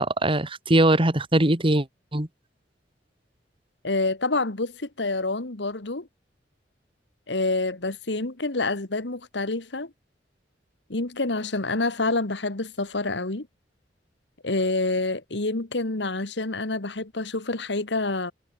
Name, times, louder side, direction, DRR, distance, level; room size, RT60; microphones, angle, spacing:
voice 1, 0.0-1.9 2.1-2.3, right 1 dB, 30° right, 2.4 m, -21 dB
voice 2, 3.8-6.1 7.3-9.9 10.9-13.5 14.4-18.3, left 2 dB, 70° left, 1.8 m, -27 dB
head